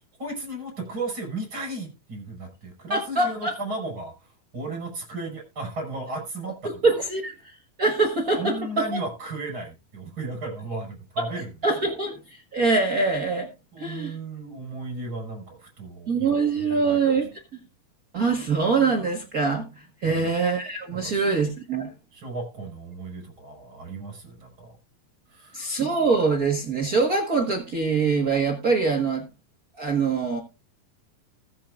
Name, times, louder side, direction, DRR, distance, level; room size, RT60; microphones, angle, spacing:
voice 1, 0.2-4.1 4.5-6.5 8.4-11.5 13.7-16.3 16.7-17.0 20.1-20.3 21.0-21.4 22.1-24.7 25.3-25.6, right 2 dB, 35° right, 2 dB, 5.7 m, -35 dB
voice 2, 2.9-3.5 6.6-9.0 11.6-13.5 13.8-14.2 16.1-17.3 18.1-21.9 25.5-29.2 29.8-30.4, right 4 dB, 70° right, 4 dB, 0.8 m, -24 dB
20.0 x 7.7 x 2.5 m, 0.28 s
omnidirectional pair, 4.1 m